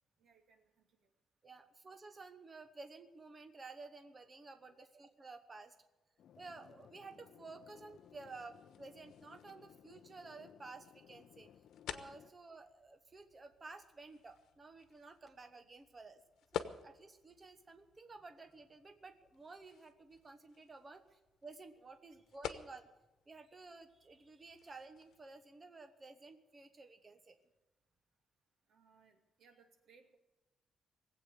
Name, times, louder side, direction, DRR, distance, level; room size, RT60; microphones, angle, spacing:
voice 1, 0.2-1.1 28.7-30.2, right 5 dB, 55° right, 4 dB, 2.6 m, -67 dB
voice 2, 1.4-5.7 6.3-11.5 11.9-16.2 16.5-22.9 23.3-27.4, right 3 dB, 20° right, 7 dB, 1.1 m, -53 dB
sound 1, 6.2-12.3, left 9 dB, 55° left, 0.5 m, -61 dB
sound 2, 7.6-25.3, left 9 dB, 85° left, 1.1 m, -52 dB
20.0 x 8.4 x 8.3 m, 1.0 s
cardioid pair, 180°, 0 cm